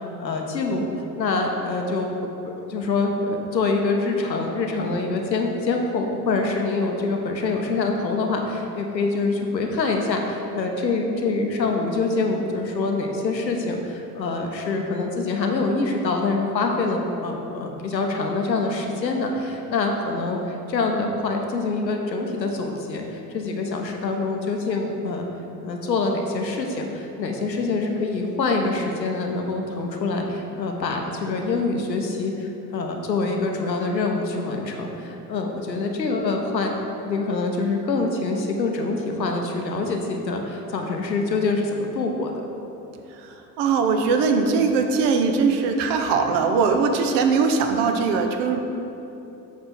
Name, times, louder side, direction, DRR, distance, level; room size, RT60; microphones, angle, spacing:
voice 1, 0.2-0.9 1.2-2.1 2.4-25.2 25.6-36.8 37.1-42.3, left 3 dB, 90° left, 2 dB, 0.7 m, -25 dB
voice 2, 43.2-48.6, right 5 dB, 55° right, 5 dB, 0.8 m, -21 dB
8.0 x 3.3 x 6.1 m, 2.9 s
figure-of-eight pair, 60°, 50 cm